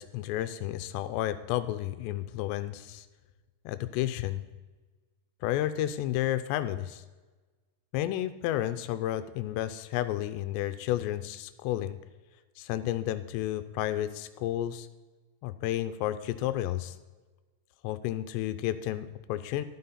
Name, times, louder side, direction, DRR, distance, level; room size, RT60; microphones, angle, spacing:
voice 1, 0.0-3.1 3.7-4.4 5.4-7.0 7.9-12.0 12.6-14.9 15.4-17.0 17.8-19.7, left 13 dB, 85° left, 12 dB, 2.8 m, -31 dB
13.5 x 12.0 x 4.2 m, 1.2 s
omnidirectional pair, 5.0 m